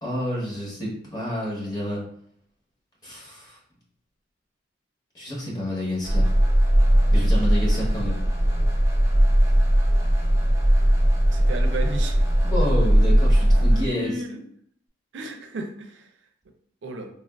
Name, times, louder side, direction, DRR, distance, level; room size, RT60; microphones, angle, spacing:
voice 1, 0.0-2.1 3.0-3.6 5.1-6.3 7.1-8.2 12.4-14.2, left 1 dB, 20° left, -5 dB, 1.0 m, -29 dB
sound 1, 6.0-13.9, equal, 15° right, 0.5 m, -19 dB
voice 2, 11.3-12.2 13.6-14.4 15.1-16.1 16.8-17.1, right 2 dB, 75° right, 5 dB, 0.5 m, -33 dB
3.3 x 2.4 x 2.3 m, 0.67 s
head